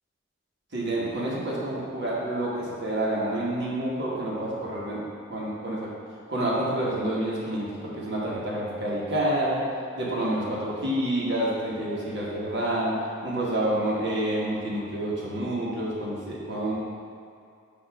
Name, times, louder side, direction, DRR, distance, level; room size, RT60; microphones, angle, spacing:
voice 1, 0.7-5.0 5.3-5.9 6.3-9.6 10.0-12.9 13.2-16.8, right 1 dB, 55° right, -6 dB, 1.5 m, -28 dB
6.9 x 3.0 x 5.9 m, 2.4 s
head